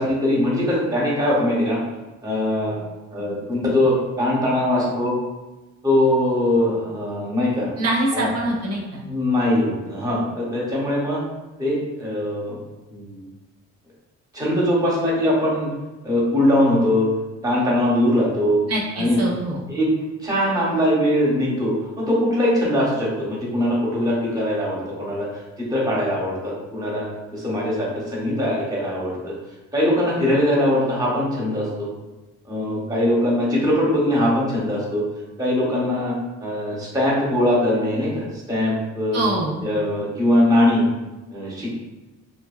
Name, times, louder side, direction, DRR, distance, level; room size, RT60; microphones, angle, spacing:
voice 1, 0.0-1.8 2.2-2.8 3.1-5.2 5.8-7.7 8.1-8.3 9.1-11.2 11.6-12.6 12.9-13.2 14.3-15.7 16.0-17.1 17.4-18.6 19.0-19.3 19.7-19.9 20.2-29.3 29.7-31.9 32.4-35.0 35.4-36.1 36.4-39.2 39.6-40.9 41.3-41.8, left 1 dB, 10° right, -5 dB, 0.9 m, -21 dB
voice 2, 7.8-9.0 18.7-19.6 39.1-39.6, right 1 dB, 55° right, -2 dB, 0.7 m, -24 dB
2.5 x 2.2 x 2.3 m, 1.1 s
cardioid pair, 90°, 30 cm